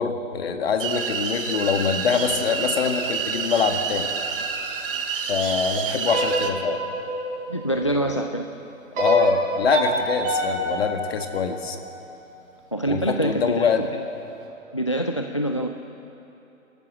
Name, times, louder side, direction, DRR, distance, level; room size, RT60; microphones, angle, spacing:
voice 1, 0.0-4.1 5.2-6.8 7.8-8.1 9.0-11.8 12.9-13.8, left 6 dB, 45° left, 5 dB, 2.0 m, -24 dB
sound 1, 0.8-6.5, right 6 dB, 40° right, 1.6 m, -28 dB
sound 2, 6.0-8.2 8.9-12.1, right 1 dB, 20° right, 4.2 m, -27 dB
voice 2, 7.5-8.4 12.7-13.9 14.7-15.7, right 1 dB, 25° left, 5 dB, 0.4 m, -25 dB
28.5 x 13.5 x 7.4 m, 3.0 s
figure-of-eight pair, 145°, 41 cm